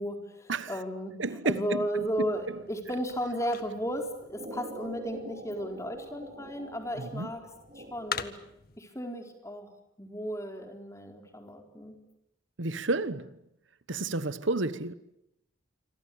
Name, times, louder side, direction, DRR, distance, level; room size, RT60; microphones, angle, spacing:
voice 1, 0.0-1.2 1.4-7.4 7.8-8.3 8.8-9.7 10.0-12.0, equal, 15° left, 4.3 m, -34 dB
voice 2, 1.2-1.9 7.0-7.3 12.6-13.4 13.9-14.9, right 3 dB, 75° right, 1.2 m, -31 dB
sound 1, 1.9-8.8, left 6 dB, 50° left, 1.7 m, -45 dB
sound 2, 4.3-8.4, right 1 dB, 40° right, 5.0 m, -45 dB
28.0 x 24.5 x 8.5 m
head